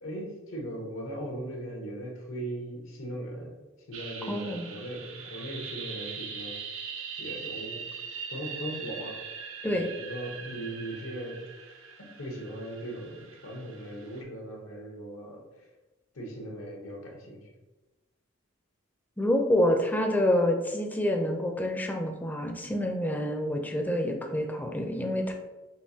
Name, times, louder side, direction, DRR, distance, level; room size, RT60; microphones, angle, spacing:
voice 1, 0.0-3.5 3.9-6.9 7.2-7.8 8.3-9.2 9.6-11.4 12.0-15.7 16.1-17.5, right 1 dB, 85° left, 0 dB, 1.0 m, -39 dB
sound 1, 3.9-14.2, right 6 dB, 85° right, 0.6 m, -41 dB
voice 2, 4.3-4.7 9.6-9.9 19.2-25.3, left 1 dB, 10° left, 3 dB, 0.4 m, -27 dB
5.5 x 2.6 x 2.7 m, 1.1 s
head